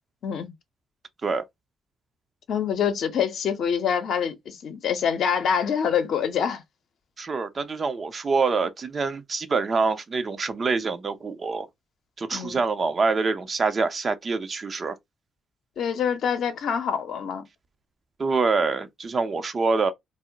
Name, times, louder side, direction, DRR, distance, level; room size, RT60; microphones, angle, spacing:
voice 1, 0.2-0.5 2.5-6.6 12.3-12.6 15.8-17.4, left 7 dB, 70° left, 0.6 m, -25 dB
voice 2, 7.2-11.7 12.2-15.0 18.2-19.9, right 4 dB, 45° right, 0.6 m, -25 dB
2.1 x 2.0 x 3.8 m
hypercardioid pair, 50°, 0 cm